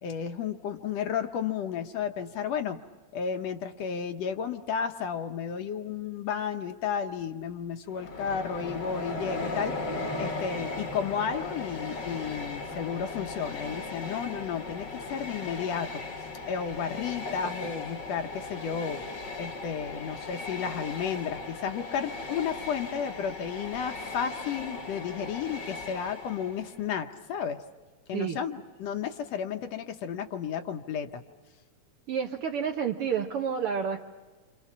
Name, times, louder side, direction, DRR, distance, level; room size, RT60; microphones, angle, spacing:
voice 1, 0.0-2.8 3.1-9.7 10.2-19.0 19.4-27.6 28.1-31.2, left 7 dB, 70° left, 7 dB, 1.9 m, -33 dB
Train, 7.9-26.8, left 3 dB, 50° left, 1.5 m, -37 dB
voice 2, 32.1-34.0, right 7 dB, 65° right, 4 dB, 1.4 m, -29 dB
27.5 x 27.0 x 6.0 m, 1.3 s
omnidirectional pair, 3.3 m